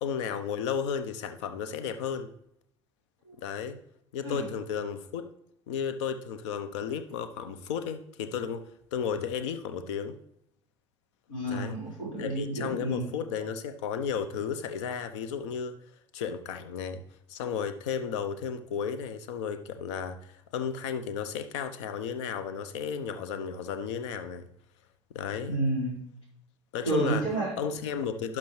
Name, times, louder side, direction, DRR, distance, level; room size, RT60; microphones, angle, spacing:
voice 1, 0.0-2.3 3.4-3.8 4.1-5.3 5.7-10.2 11.5-11.8 12.2-15.8 16.1-17.0 17.3-24.5 25.1-25.6 26.7-27.2 27.6-28.4, left 7 dB, 70° left, 0.8 m, -33 dB
voice 2, 11.3-13.1 25.5-26.0 26.8-27.5, right 2 dB, 90° left, 3.8 m, -30 dB
11.5 x 5.9 x 3.2 m
figure-of-eight pair, 60°, 16 cm